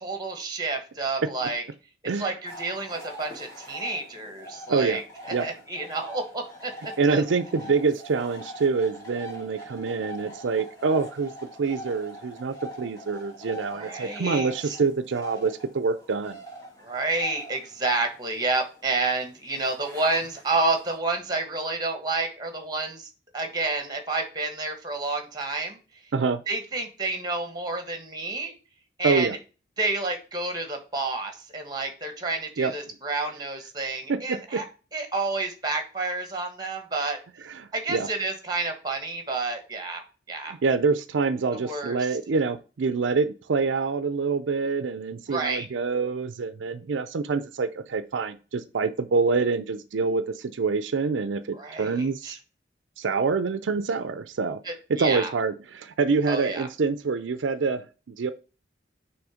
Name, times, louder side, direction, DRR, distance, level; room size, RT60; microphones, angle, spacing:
voice 1, 0.0-1.6 2.2-5.0 5.3-6.7 7.1-7.2 13.7-14.8 16.8-23.1 23.3-25.8 26.5-28.5 29.0-29.3 29.8-34.6 34.9-37.2 37.7-40.0 40.3-40.5 41.5-42.0 45.3-45.7 51.5-52.4 54.6-55.3 56.3-56.7, right 3 dB, 20° right, 6 dB, 1.2 m, -29 dB
sound 1, 2.5-21.0, equal, 20° left, 2.1 m, -43 dB
voice 2, 4.7-5.0 5.3-5.5 7.0-11.3 11.6-16.4 26.1-26.4 29.0-29.4 32.6-32.7 34.1-34.6 37.4-38.1 40.5-52.4 53.0-54.6 54.9-58.3, right 4 dB, 80° right, 11 dB, 0.5 m, -26 dB
6.2 x 3.2 x 4.9 m, 0.34 s
head